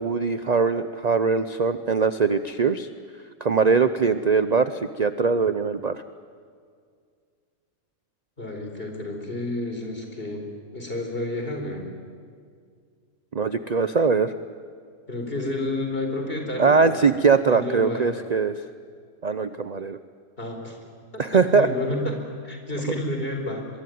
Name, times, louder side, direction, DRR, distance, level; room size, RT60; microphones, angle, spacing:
voice 1, 0.0-2.9 3.4-6.0 13.3-14.3 16.6-18.5 19.2-20.0 21.2-21.7 22.9-23.0, right 5 dB, 40° right, 11 dB, 0.7 m, -21 dB
voice 2, 8.4-11.9 15.1-17.0 17.5-18.1 20.4-20.8 21.5-23.7, left 1 dB, 40° left, 3 dB, 4.6 m, -30 dB
24.5 x 23.0 x 9.3 m, 2.1 s
omnidirectional pair, 1.4 m